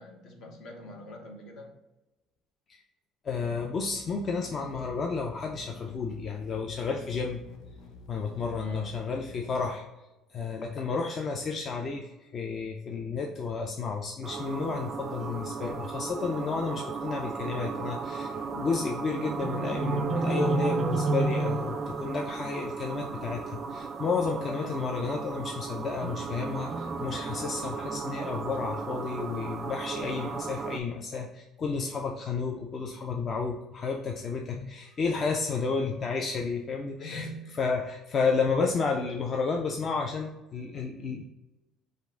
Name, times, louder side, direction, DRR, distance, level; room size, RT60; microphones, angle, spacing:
voice 1, 0.0-1.8 8.5-9.0 35.5-35.7 37.0-37.6, equal, 60° left, 2 dB, 1.1 m, -44 dB
voice 2, 3.2-7.4 8.1-9.8 10.3-37.3 37.6-41.2, left 4 dB, 35° left, 2 dB, 0.4 m, -31 dB
sound 1, 3.8-9.7, left 3 dB, 85° left, 0.9 m, -49 dB
sound 2, 14.2-30.8, right 4 dB, 35° right, 0.4 m, -33 dB
5.1 x 2.5 x 3.6 m, 1.0 s
cardioid pair, 135°, 0 cm